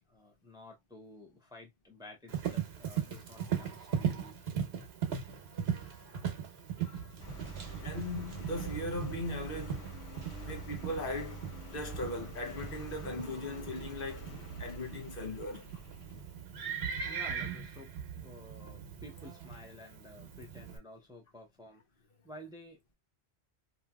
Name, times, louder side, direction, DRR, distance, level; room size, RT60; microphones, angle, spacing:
voice 1, 0.0-4.4 17.0-17.9 18.2-21.8 22.2-22.9, left 1 dB, 5° right, 0.7 m, -52 dB
Livestock farm animals working animals, 2.3-20.8, right 8 dB, 80° right, 1.1 m, -39 dB
voice 2, 5.7-6.4 6.8-7.1 7.8-9.9 10.4-11.4 11.7-14.3 14.6-15.7, left 2 dB, 60° left, 1.0 m, -39 dB
Engine, 7.2-16.6, right 2 dB, 90° left, 1.4 m, -46 dB
2.9 x 2.6 x 2.2 m
omnidirectional pair, 1.1 m